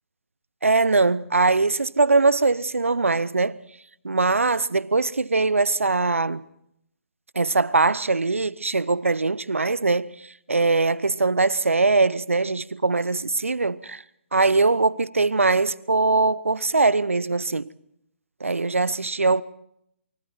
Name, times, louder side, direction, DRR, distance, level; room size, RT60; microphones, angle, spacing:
voice 1, 0.6-3.6 4.0-6.4 7.3-10.1 10.5-14.0 14.3-17.7 18.4-19.4, right 3 dB, 80° right, 0.8 m, -21 dB
29.0 x 24.5 x 4.4 m
figure-of-eight pair, 145°, 7 cm